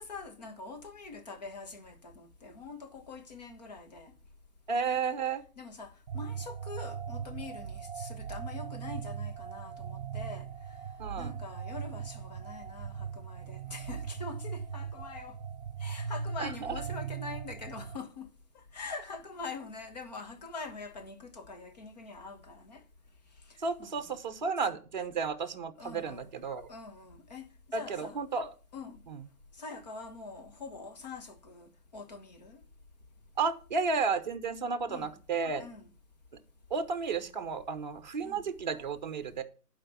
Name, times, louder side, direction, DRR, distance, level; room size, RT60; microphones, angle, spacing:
voice 1, 0.0-4.1 5.6-10.5 11.2-15.4 15.8-18.3 18.5-22.8 23.5-24.2 25.8-26.3 26.7-28.2 28.7-29.0 29.6-32.6 34.9-35.2 35.6-35.9 38.2-38.5, left 4 dB, 25° left, 1.3 m, -44 dB
voice 2, 4.7-5.4 11.0-11.3 16.4-16.7 23.6-26.7 27.7-28.5 29.1-29.2 33.4-35.6 36.7-39.4, right 5 dB, 30° right, 0.9 m, -32 dB
sound 1, 6.1-18.0, right 7 dB, 50° right, 0.9 m, -39 dB
11.0 x 5.1 x 7.3 m
hypercardioid pair, 160°, 46 cm